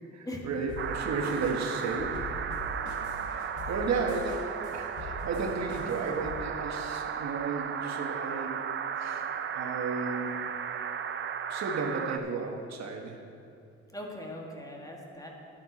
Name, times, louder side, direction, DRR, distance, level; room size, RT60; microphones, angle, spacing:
voice 1, 0.1-2.3 3.3-8.6 9.0-9.2 9.5-10.4 11.5-13.2, right 4 dB, 60° right, 2 dB, 1.3 m, -33 dB
sound 1, 0.7-6.4, left 2 dB, 75° left, 1.2 m, -43 dB
sound 2, 0.8-12.2, right 7 dB, 40° right, 0.5 m, -35 dB
voice 2, 13.9-15.3, left 1 dB, 10° left, -1 dB, 1.7 m, -40 dB
11.0 x 9.4 x 4.1 m, 2.6 s
cardioid pair, 90°, 30 cm